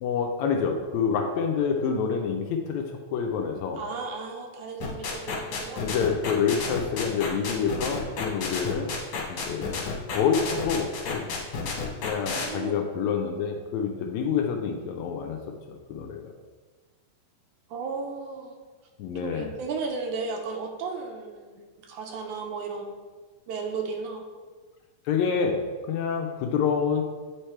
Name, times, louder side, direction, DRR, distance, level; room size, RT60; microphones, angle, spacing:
voice 1, 0.0-3.8 5.8-8.9 9.3-9.9 10.1-11.2 12.0-15.4 15.7-16.3 19.0-19.5 25.1-27.0, left 6 dB, 80° left, 3 dB, 1.7 m, -27 dB
voice 2, 3.8-5.8 12.3-12.8 17.7-18.6 19.2-22.9 23.5-24.2, right 4 dB, 75° right, 3 dB, 2.0 m, -34 dB
sound 1, 4.8-12.5, left 5 dB, 60° left, 2.0 m, -31 dB
8.8 x 3.4 x 4.4 m, 1.4 s
omnidirectional pair, 3.7 m